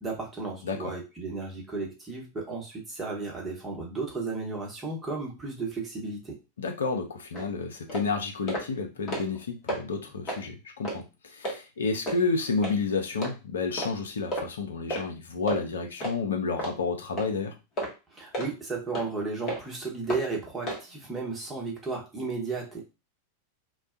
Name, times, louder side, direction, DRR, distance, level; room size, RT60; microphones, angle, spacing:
voice 1, 0.0-6.4 18.1-22.8, right 3 dB, 10° right, -3 dB, 1.0 m, -34 dB
voice 2, 6.6-17.5, left 4 dB, 65° left, 3 dB, 0.6 m, -30 dB
sound 1, 7.3-7.5 7.9-8.1 8.5-8.7 9.0-9.4 9.7-9.8 10.2-10.4 10.8-11.0 11.4-11.6 12.1-12.2 12.6-12.8 13.2-13.3 13.8-13.9 14.3-14.5 14.9-15.1 15.5-15.6 16.0-16.2 16.6-16.8 17.2-17.3 17.8-17.9 18.3-18.5 18.9-19.1 19.5-19.6 20.1-20.2 20.7-20.8, right 1 dB, 30° left, 0.9 m, -32 dB
2.2 x 2.2 x 2.5 m, 0.27 s
figure-of-eight pair, 90°, 0 cm